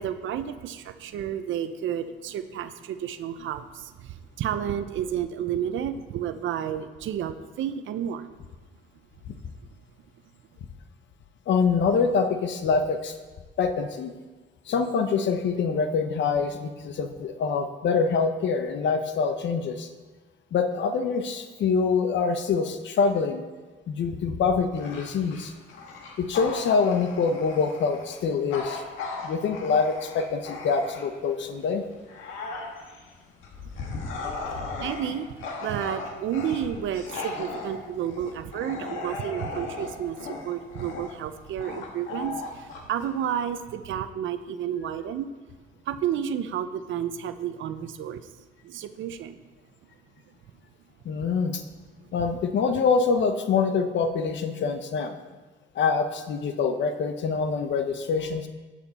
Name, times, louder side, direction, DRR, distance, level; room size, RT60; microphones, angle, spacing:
voice 1, 0.0-8.3 34.6-45.3 45.9-48.2 48.6-49.4, right 9 dB, 75° right, 11 dB, 0.6 m, -31 dB
voice 2, 11.5-13.1 13.6-14.1 14.7-19.9 20.5-23.5 23.9-25.5 26.2-28.8 29.2-31.8 51.0-51.6 52.1-55.1 55.7-58.5, left 5 dB, 65° left, 7 dB, 0.9 m, -25 dB
Bark / Growling, 24.7-31.3 31.8-43.7, left 3 dB, 85° left, 1.6 m, -37 dB
11.5 x 7.3 x 4.2 m, 1.3 s
cardioid pair, 90°, 20 cm